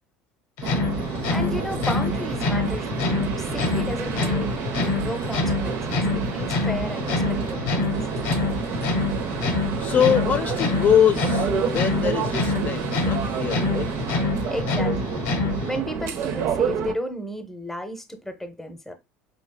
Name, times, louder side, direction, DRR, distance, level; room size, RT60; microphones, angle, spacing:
sound 1, 0.6-15.8, left 3 dB, 75° left, 1.0 m, -26 dB
sound 2, 0.6-16.9, right 7 dB, 55° right, 0.5 m, -29 dB
voice 1, 1.3-7.9 14.5-15.3 15.6-18.9, equal, 5° left, 0.7 m, -33 dB
voice 2, 9.8-13.9, left 8 dB, 40° left, 0.4 m, -23 dB
5.2 x 2.3 x 2.2 m
supercardioid pair, 90°, 5 cm